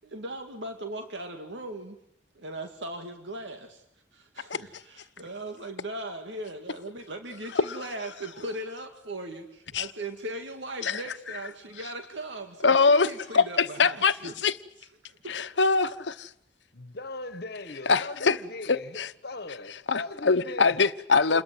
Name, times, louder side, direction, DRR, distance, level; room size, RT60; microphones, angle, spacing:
voice 1, 0.0-2.0 2.4-3.8 4.1-14.4 15.0-15.4, right 1 dB, 85° right, 2.3 m, -38 dB
voice 2, 12.6-13.1 13.3-14.1 14.4-14.5 15.3-16.3 17.9-18.4 18.7-19.1 19.9-21.4, left 4 dB, 75° left, 1.1 m, -23 dB
voice 3, 16.7-20.8 21.3-21.4, left 2 dB, 60° left, 1.6 m, -39 dB
28.0 x 22.0 x 7.8 m
head